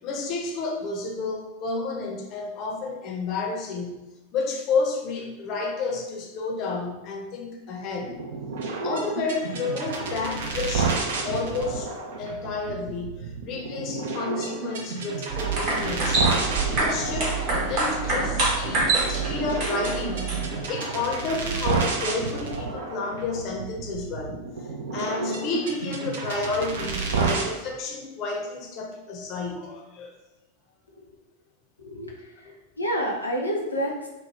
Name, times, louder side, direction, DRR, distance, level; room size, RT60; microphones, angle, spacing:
voice 1, 0.0-8.2 8.8-11.9 12.2-16.2 16.5-24.4 24.9-30.1 32.4-32.5, left 3 dB, 35° left, 1 dB, 0.6 m, -31 dB
sound 1, 8.0-27.5, right 4 dB, 60° right, 0.5 m, -30 dB
sound 2, 15.3-20.7, right 3 dB, 45° right, 1.1 m, -26 dB
voice 2, 31.8-34.1, equal, 80° left, -1 dB, 0.6 m, -29 dB
3.0 x 2.2 x 3.0 m, 1.0 s
figure-of-eight pair, 90°, 0 cm